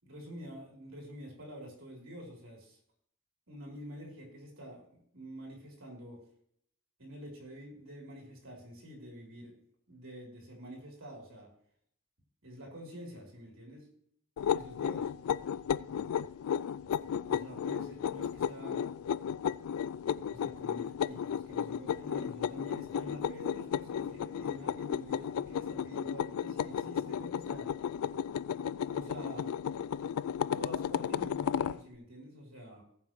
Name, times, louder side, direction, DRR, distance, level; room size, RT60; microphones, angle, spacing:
voice 1, 0.0-2.8 3.5-6.2 7.0-9.5 9.9-11.5 12.4-13.9 14.5-15.1 17.2-18.9 20.2-27.7 28.9-29.6 30.5-32.8, equal, 65° right, -2 dB, 3.7 m, -47 dB
sound 1, 14.4-31.8, left 8 dB, 80° left, 0.3 m, -34 dB
19.5 x 7.4 x 3.1 m, 0.66 s
head